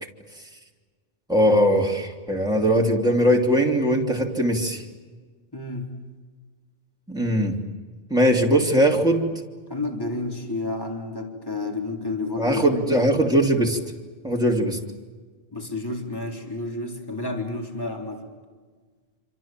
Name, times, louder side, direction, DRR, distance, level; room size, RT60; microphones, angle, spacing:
voice 1, 1.3-4.8 7.1-7.6 8.1-9.3 12.4-13.8 14.2-14.8, equal, 5° right, -1 dB, 2.9 m, -20 dB
voice 2, 5.5-5.9 9.7-12.8 15.5-18.2, left 2 dB, 20° left, 1 dB, 3.8 m, -30 dB
27.5 x 26.5 x 7.6 m, 1.5 s
omnidirectional pair, 1.3 m